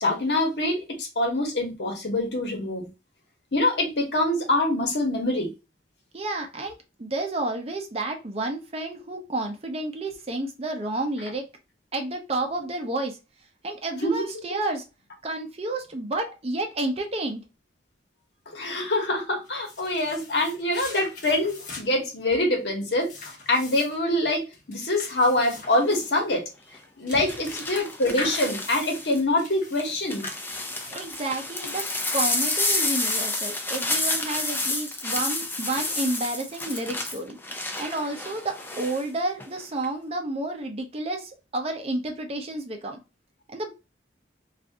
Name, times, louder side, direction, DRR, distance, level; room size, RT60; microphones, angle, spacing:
voice 1, 0.0-2.9 3.5-5.5 14.0-14.3 18.5-23.1 23.5-26.4 27.0-30.2, left 1 dB, 65° left, 1.1 m, -25 dB
voice 2, 6.1-11.4 11.9-13.2 13.6-14.8 15.2-17.4 27.1-27.3 30.9-37.4 37.8-43.0 43.5-43.7, right 2 dB, 35° right, 0.6 m, -30 dB
sound 1, 19.4-31.6, left 3 dB, 45° left, 0.8 m, -42 dB
sound 2, 25.6-26.0 27.3-29.2 29.8-39.0 39.4-39.9, left 2 dB, 10° left, 0.4 m, -30 dB
2.7 x 2.5 x 3.3 m
head